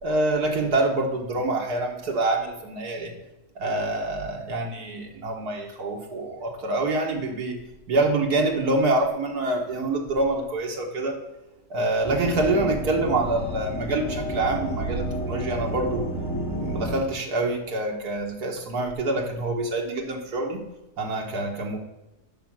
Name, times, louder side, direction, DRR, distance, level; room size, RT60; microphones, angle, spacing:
voice 1, 0.0-3.1 3.6-7.6 7.9-11.2 11.7-16.1 16.4-20.7 21.0-21.8, right 2 dB, 80° right, 0 dB, 1.9 m, -26 dB
sound 1, 12.0-17.0, equal, 15° left, 0.9 m, -31 dB
11.0 x 4.4 x 6.2 m, 0.98 s
omnidirectional pair, 1.6 m